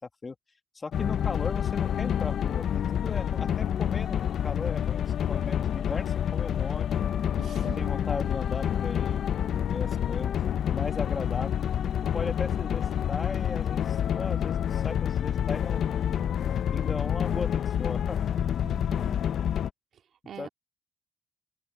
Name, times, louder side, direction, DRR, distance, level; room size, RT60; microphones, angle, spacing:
voice 1, 0.8-2.7 2.9-4.2 4.4-6.9 7.8-10.4 10.6-11.6 12.1-18.2 20.4-20.5, left 4 dB, 30° left, 1.9 m, -37 dB
sound 1, 0.9-19.7, left 9 dB, 65° left, 0.8 m, -28 dB
voice 2, 7.4-8.0 18.6-19.2 19.9-20.5, right 9 dB, 65° right, 2.6 m, -44 dB
cardioid pair, 90°, 0 cm